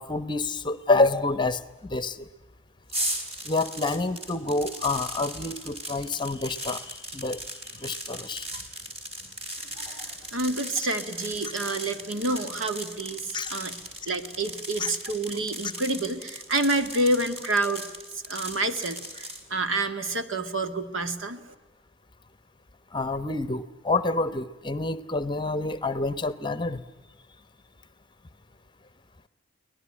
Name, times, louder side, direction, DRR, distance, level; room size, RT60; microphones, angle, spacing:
voice 1, 0.0-2.3 3.4-8.6 9.8-10.1 11.4-11.5 13.3-13.5 14.8-14.9 22.9-26.8, left 3 dB, 25° left, 15 dB, 1.0 m, -28 dB
sound 1, 2.9-19.4, right 1 dB, 30° right, 4.0 m, -37 dB
voice 2, 9.6-13.8 14.1-17.8 18.1-21.5, right 2 dB, 90° right, 8 dB, 2.1 m, -28 dB
24.5 x 18.5 x 9.8 m, 1.2 s
head